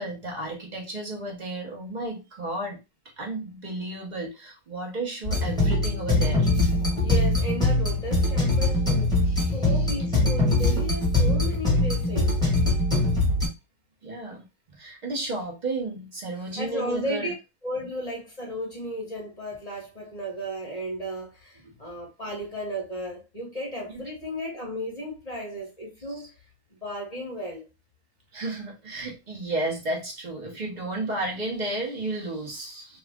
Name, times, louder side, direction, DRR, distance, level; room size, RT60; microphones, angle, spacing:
voice 1, 0.0-2.8 3.2-6.5 9.2-9.9 14.0-14.4 14.7-17.3 21.6-21.7 23.9-24.0 26.2-26.3 28.3-33.0, right 2 dB, 45° right, 0.6 m, -33 dB
sound 1, 5.2-13.5, left 2 dB, 5° left, 1.1 m, -22 dB
voice 2, 6.7-9.2 9.5-12.4 16.6-17.3 17.6-26.3 26.7-27.6, equal, 25° left, 1.0 m, -34 dB
3.1 x 2.4 x 3.5 m
omnidirectional pair, 2.0 m